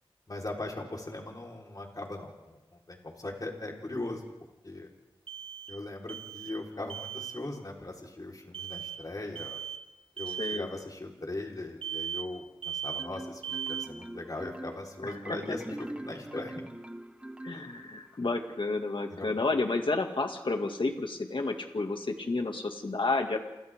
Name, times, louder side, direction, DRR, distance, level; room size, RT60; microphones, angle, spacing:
voice 1, 0.3-2.6 2.9-4.2 4.6-4.9 5.7-9.6 10.2-16.6 17.5-17.6 19.1-19.3, left 2 dB, 40° left, -1 dB, 4.6 m, -39 dB
sound 1, 5.3-6.6 6.9-7.4 8.5-9.0 9.3-9.8 10.2-10.7 11.8-12.4 12.6-13.2 13.4-14.0, right 9 dB, 75° right, 1.1 m, -37 dB
voice 2, 10.3-10.7 15.0-15.2 17.4-23.4, left 3 dB, 60° left, 3 dB, 2.4 m, -31 dB
Marimba xylophone, 13.0-18.1, right 1 dB, 10° right, 1.3 m, -42 dB
29.0 x 25.0 x 3.8 m, 1.0 s
wide cardioid pair, 65°, 10 cm